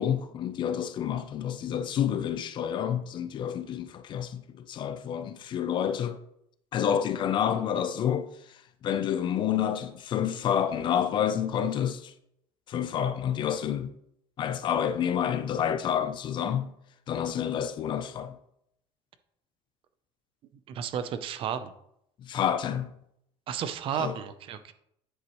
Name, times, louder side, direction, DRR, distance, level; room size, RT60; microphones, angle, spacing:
voice 1, 0.0-6.2 6.7-8.3 8.8-12.1 12.7-13.9 14.4-16.7 17.1-18.4 22.2-22.9 24.0-24.1, left 9 dB, 40° left, 0.6 m, -29 dB
voice 2, 20.7-21.7 23.5-24.7, right 8 dB, 45° right, 0.7 m, -33 dB
10.0 x 7.9 x 3.1 m
cardioid pair, 155°, 12 cm